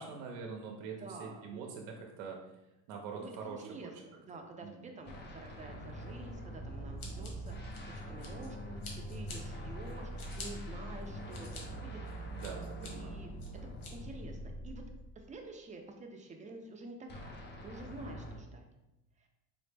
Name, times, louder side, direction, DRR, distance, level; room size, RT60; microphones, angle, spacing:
voice 1, 0.0-2.4 2.9-3.9 4.6-4.9 7.0-7.3 10.4-10.9 12.3-13.2, right 5 dB, 65° right, 1 dB, 0.6 m, -45 dB
voice 2, 1.0-1.7 3.1-12.4 12.9-13.6 13.9-14.8 15.2-18.7 19.2-19.3, right 2 dB, 20° right, 3 dB, 0.5 m, -49 dB
sound 1, 5.1-15.3 17.1-18.4, right 1 dB, 25° left, 0.7 m, -44 dB
Scissors, 7.0-8.5 8.8-9.4 9.9-10.5 11.0-11.6 12.1-12.9 13.4-13.9, left 4 dB, 60° left, 1.1 m, -48 dB
4.1 x 2.0 x 3.3 m, 0.95 s
supercardioid pair, 105°, 39 cm